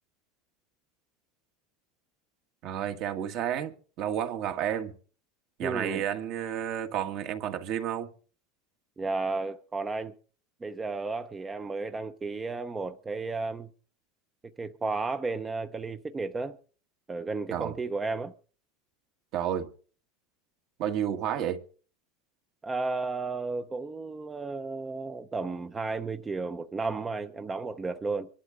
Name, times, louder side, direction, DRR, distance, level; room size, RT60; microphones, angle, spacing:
voice 1, 2.6-4.9 5.6-8.1 17.5-17.8 19.3-19.7 20.8-21.6, right 10 dB, 50° right, 1.7 m, -31 dB
voice 2, 5.6-6.0 9.0-10.1 10.6-13.7 14.6-16.6 17.1-18.3 22.6-28.3, right 3 dB, 15° right, 0.7 m, -33 dB
24.5 x 11.5 x 3.7 m
supercardioid pair, 150°, 0 cm